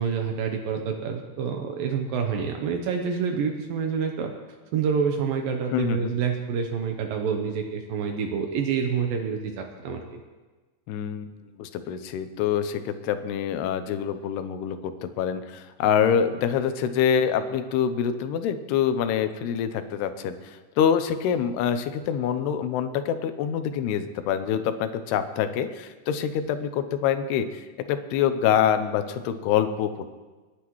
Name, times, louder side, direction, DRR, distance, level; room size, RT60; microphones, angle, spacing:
voice 1, 0.0-4.3 4.7-10.2, right 6 dB, 75° right, 3 dB, 2.3 m, -27 dB
voice 2, 5.7-6.1 10.9-30.1, left 8 dB, 85° left, 10 dB, 2.8 m, -26 dB
30.0 x 10.0 x 3.1 m, 1.3 s
omnidirectional pair, 4.7 m